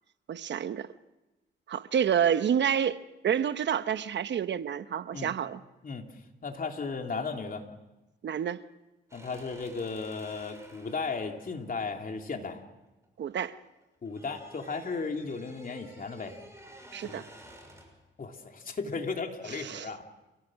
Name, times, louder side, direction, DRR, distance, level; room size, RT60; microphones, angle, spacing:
voice 1, 0.3-0.9 1.7-3.0 3.2-5.6 8.2-8.6 13.2-13.6 16.9-17.2 19.5-19.9, right 8 dB, 65° right, 13 dB, 0.9 m, -28 dB
voice 2, 6.4-7.6 9.1-12.6 14.0-16.3 17.0-17.2 18.2-20.0, left 4 dB, 45° left, 3 dB, 3.1 m, -35 dB
sound 1, 9.1-13.3 13.6-18.0, right 1 dB, 15° right, 6.3 m, -52 dB
29.5 x 16.5 x 6.4 m, 1.1 s
cardioid pair, 75°, 19 cm